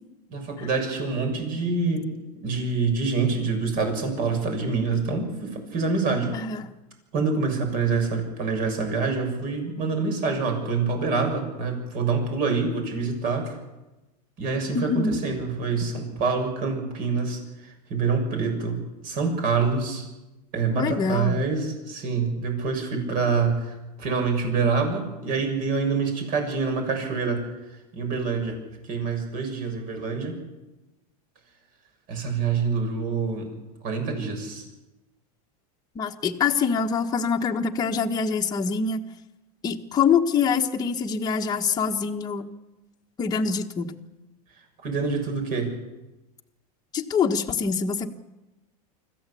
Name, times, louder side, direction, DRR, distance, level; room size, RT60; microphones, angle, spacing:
voice 1, 0.3-2.0 2.3-6.3 7.1-13.5 14.4-20.1 20.5-27.4 27.9-28.6 28.9-30.4 32.1-33.5 33.8-34.6 44.8-45.7, right 4 dB, 45° right, 4 dB, 7.1 m, -26 dB
voice 2, 6.3-6.6 14.7-15.2 20.8-21.4 35.9-39.0 39.6-42.4 43.2-43.9 46.9-48.1, left 6 dB, 20° left, 1 dB, 1.4 m, -25 dB
25.5 x 15.0 x 8.5 m, 1.0 s
supercardioid pair, 140°, 20 cm